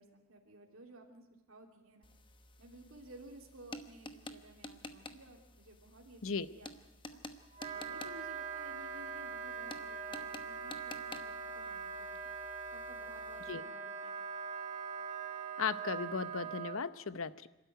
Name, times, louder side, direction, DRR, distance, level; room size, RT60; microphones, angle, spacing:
voice 1, 0.0-2.1 2.6-6.7 7.1-7.2 7.7-12.3 12.7-14.1, right 2 dB, 70° right, 1 dB, 3.0 m, -56 dB
sound 1, 2.0-13.5, left 2 dB, 20° left, 1.0 m, -52 dB
Wind instrument woodwind instrument, 7.5-16.8, right 6 dB, 35° right, 2.1 m, -42 dB
voice 2, 15.6-17.5, left 5 dB, 70° left, 15 dB, 0.8 m, -36 dB
27.0 x 13.0 x 9.4 m, 1.0 s
head